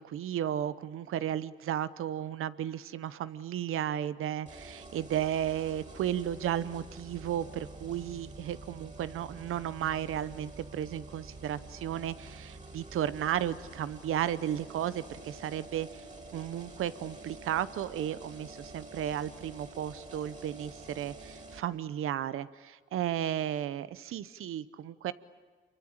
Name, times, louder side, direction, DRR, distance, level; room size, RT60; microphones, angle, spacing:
voice 1, 0.0-16.0 16.3-25.1, right 10 dB, 85° right, 15 dB, 0.8 m, -34 dB
sound 1, 4.5-21.6, right 2 dB, 35° right, 5.1 m, -48 dB
28.0 x 23.5 x 8.8 m, 1.5 s
supercardioid pair, 50°, 21 cm